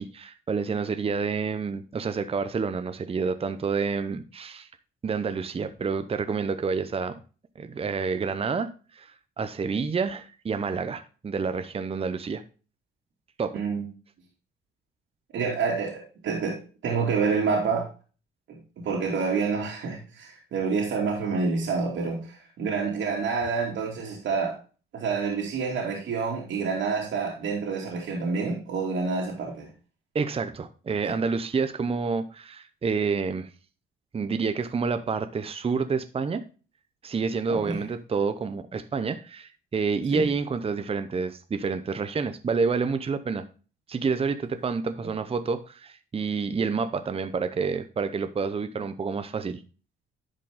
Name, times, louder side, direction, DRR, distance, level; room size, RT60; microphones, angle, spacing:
voice 1, 0.0-4.7 5.0-7.2 7.6-12.4 13.4-13.6 30.1-33.5 34.1-36.4 37.0-43.4 43.9-49.6, right 5 dB, 30° right, 11 dB, 0.7 m, -28 dB
voice 2, 13.5-13.8 15.3-16.6 16.8-17.9 18.5-18.6 18.8-24.6 24.9-29.7 31.0-31.1 37.5-37.8 40.1-40.3, right 5 dB, 70° right, -2 dB, 2.6 m, -28 dB
10.5 x 5.2 x 3.7 m, 0.36 s
cardioid pair, 90°, 20 cm